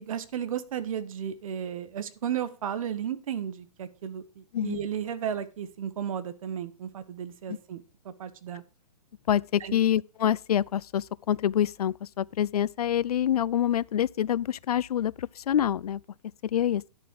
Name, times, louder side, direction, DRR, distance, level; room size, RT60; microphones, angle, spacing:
voice 1, 0.0-8.6 9.6-9.8, right 9 dB, 60° right, 1.3 m, -34 dB
voice 2, 9.3-16.0 16.5-16.8, left 10 dB, 75° left, 0.4 m, -26 dB
11.0 x 6.7 x 4.8 m
hypercardioid pair, 125°, 19 cm